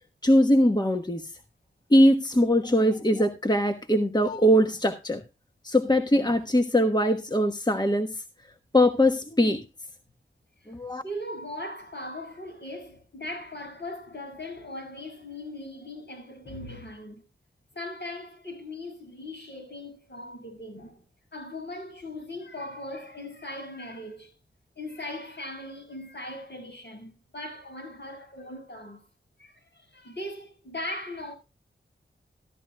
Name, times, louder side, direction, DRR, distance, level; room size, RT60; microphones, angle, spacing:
voice 1, 0.2-1.3 1.9-5.2 5.6-8.2 8.7-9.6 10.7-11.0, equal, 20° left, 1.2 m, -21 dB
voice 2, 11.0-17.2 17.8-21.0 21.3-24.3 24.8-29.0 29.4-31.3, left 1 dB, 55° left, 6.7 m, -39 dB
14.5 x 14.0 x 2.2 m
cardioid pair, 45°, 21 cm